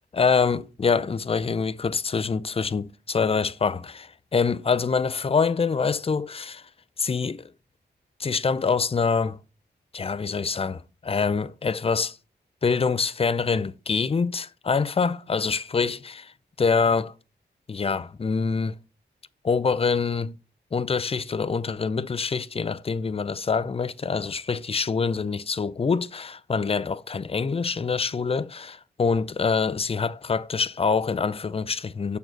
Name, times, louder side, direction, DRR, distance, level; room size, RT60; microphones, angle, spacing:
voice 1, 0.1-6.7 7.0-7.5 8.2-9.4 9.9-12.2 12.6-16.2 16.6-17.1 17.7-18.8 19.4-20.4 20.7-32.2, left 5 dB, 35° left, 0.5 m, -25 dB
7.0 x 3.9 x 6.2 m
cardioid pair, 80°, 18 cm